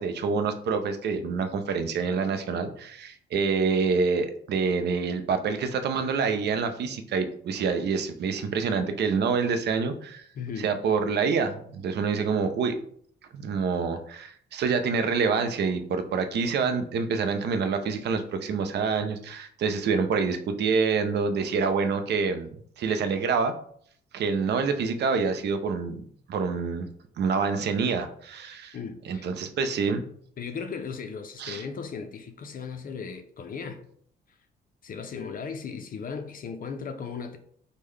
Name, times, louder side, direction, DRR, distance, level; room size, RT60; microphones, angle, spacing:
voice 1, 0.0-10.2 10.6-12.8 13.3-22.5 22.8-23.5 24.1-26.0 26.3-26.9 27.2-28.8 29.0-30.0 31.4-31.6, right 5 dB, 60° right, 0.5 m, -27 dB
voice 2, 10.3-10.7 28.7-29.3 30.4-33.8 34.8-37.4, left 5 dB, 45° left, 0.4 m, -36 dB
3.6 x 2.1 x 3.1 m
cardioid pair, 90°, 20 cm